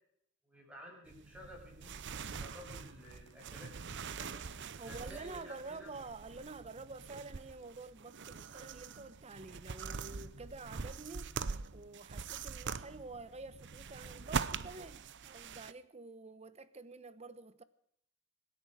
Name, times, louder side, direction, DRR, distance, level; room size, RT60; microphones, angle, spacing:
voice 1, 0.4-4.3 4.9-5.9, left 1 dB, 5° right, 6.4 m, -53 dB
sound 1, 1.1-15.7, right 5 dB, 55° right, 0.7 m, -43 dB
voice 2, 4.8-17.6, right 3 dB, 30° right, 1.0 m, -49 dB
25.0 x 10.5 x 4.9 m
head